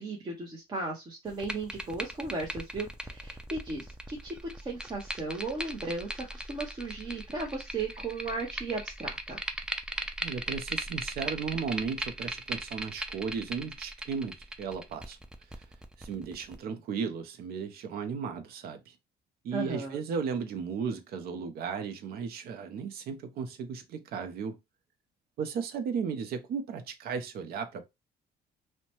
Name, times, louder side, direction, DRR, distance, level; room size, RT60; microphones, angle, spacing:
voice 1, 0.0-9.4 19.5-20.0, right 3 dB, 25° right, 0.8 m, -36 dB
sound 1, 1.3-16.5, right 1 dB, 5° right, 0.4 m, -39 dB
voice 2, 10.2-15.2 15.6-15.7 16.0-18.9 19.4-24.6 25.4-27.9, right 6 dB, 65° right, 0.6 m, -35 dB
2.7 x 2.2 x 2.8 m
cardioid pair, 110°, 17 cm